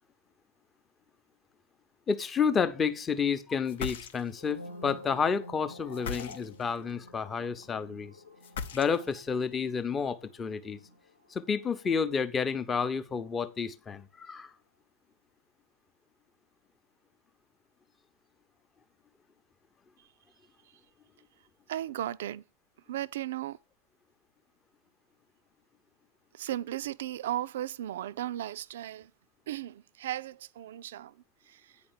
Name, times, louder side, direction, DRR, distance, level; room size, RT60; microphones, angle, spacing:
voice 1, 2.1-8.1 8.7-10.8 11.3-14.5, left 6 dB, 20° left, 0.8 m, -30 dB
sound 1, 3.6-4.5 5.9-6.8 8.4-9.3, left 6 dB, 60° left, 0.7 m, -39 dB
sound 2, 4.3-12.6 12.9-13.3, left 1 dB, 80° left, 1.3 m, -50 dB
voice 2, 21.7-22.4 22.9-23.6 26.3-29.1 29.5-31.1 31.5-31.7, right 12 dB, 60° right, 0.4 m, -36 dB
9.1 x 5.2 x 6.4 m
figure-of-eight pair, 90°, 0 cm